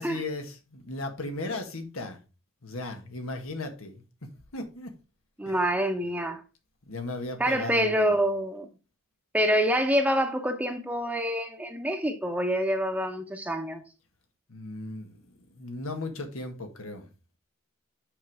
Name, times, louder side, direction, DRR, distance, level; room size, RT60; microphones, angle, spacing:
voice 1, 0.0-2.2 2.6-4.9 5.5-5.6 6.9-8.1 14.5-17.1, left 2 dB, 85° left, 1.8 m, -36 dB
voice 2, 5.4-6.4 7.4-8.6 9.3-13.8, equal, 5° right, 0.9 m, -26 dB
7.1 x 5.3 x 4.8 m
head